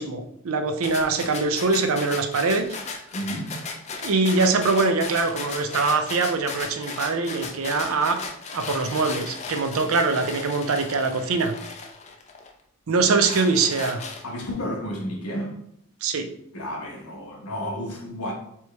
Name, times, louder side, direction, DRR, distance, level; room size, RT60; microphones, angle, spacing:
voice 1, 0.0-2.7 4.0-8.2 8.5-11.5 12.9-14.0 16.0-16.3, right 4 dB, 65° right, 0.5 m, -23 dB
sound 1, 0.8-12.5 12.9-14.5, left 4 dB, 30° left, 0.4 m, -36 dB
voice 2, 3.1-3.6 14.2-15.6 16.5-18.3, equal, 80° left, 1.1 m, -31 dB
4.4 x 3.1 x 3.3 m
head